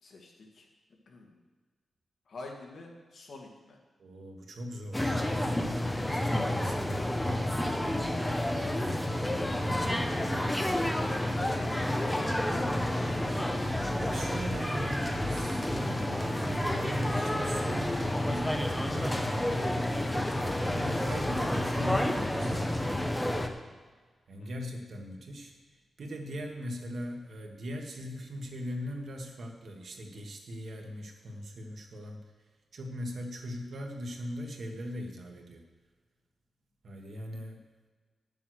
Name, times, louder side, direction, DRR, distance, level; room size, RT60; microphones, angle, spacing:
voice 1, 0.0-0.7 1.1-1.3 2.3-3.8 6.4-6.7 11.3-12.3 24.4-24.5, left 3 dB, 65° left, 0 dB, 2.0 m, -48 dB
voice 2, 4.0-5.2 6.1-7.1 14.0-17.9 18.2-20.0 20.7-22.9 24.3-25.5 26.0-32.2 32.7-35.6 36.8-37.6, equal, 60° right, 2 dB, 1.6 m, -39 dB
sound 1, 4.9-23.5, left 1 dB, 10° left, 0.8 m, -30 dB
9.6 x 7.1 x 6.4 m, 1.4 s
wide cardioid pair, 135°, 0 cm